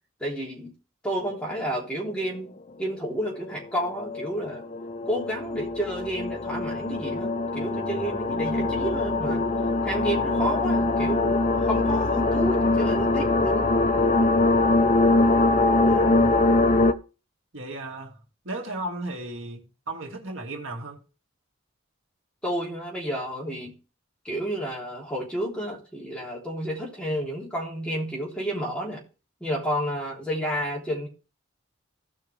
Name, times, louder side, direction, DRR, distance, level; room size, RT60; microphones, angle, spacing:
voice 1, 0.2-0.7 1.0-2.5 2.8-4.6 5.0-9.5 9.8-13.7 22.4-23.7 24.2-29.0 29.4-31.1, equal, 5° left, 3.2 m, -30 dB
sound 1, 1.5-1.6 3.1-16.9, left 2 dB, 35° left, 0.6 m, -23 dB
voice 2, 15.8-16.3 17.5-21.0, right 2 dB, 75° right, 2.2 m, -35 dB
16.0 x 5.8 x 3.4 m
head